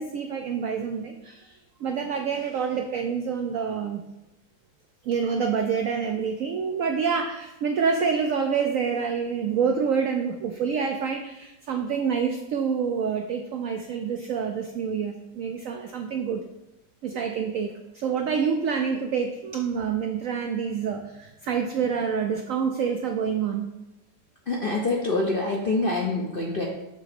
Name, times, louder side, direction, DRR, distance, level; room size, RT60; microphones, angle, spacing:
voice 1, 0.0-4.0 5.0-16.4 17.0-23.7, right 6 dB, 80° right, 4 dB, 0.7 m, -27 dB
voice 2, 24.5-26.6, left 2 dB, 60° left, -2 dB, 0.6 m, -25 dB
7.1 x 2.9 x 5.9 m, 0.94 s
omnidirectional pair, 1.9 m